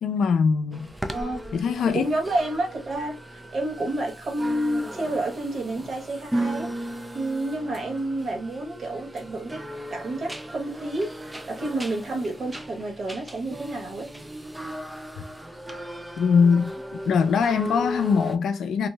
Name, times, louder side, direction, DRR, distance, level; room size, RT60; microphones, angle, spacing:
voice 1, 0.0-0.9 1.5-2.1 16.2-16.7 17.1-18.9, left 6 dB, 65° left, 0.4 m, -22 dB
sound 1, 0.7-18.4, right 1 dB, 10° right, 0.3 m, -36 dB
voice 2, 1.1-1.4 1.8-9.6 9.9-14.1, right 2 dB, 40° right, 1.1 m, -29 dB
2.6 x 2.0 x 3.2 m
cardioid pair, 130°, 0 cm